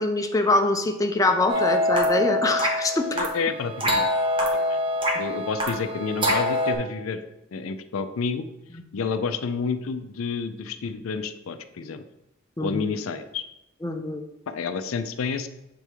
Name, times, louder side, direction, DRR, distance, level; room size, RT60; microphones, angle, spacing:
voice 1, 0.0-3.2 8.7-8.8 12.6-12.8 13.8-14.2, left 2 dB, 15° left, 4 dB, 0.5 m, -24 dB
sound 1, 1.5-6.8, left 1 dB, 25° right, 1.0 m, -25 dB
voice 2, 3.1-4.1 4.4-4.8 5.2-7.2 7.5-8.4 8.9-12.0 12.6-13.4 14.5-15.5, left 5 dB, 85° left, 10 dB, 0.4 m, -29 dB
6.9 x 3.4 x 4.6 m, 0.89 s
head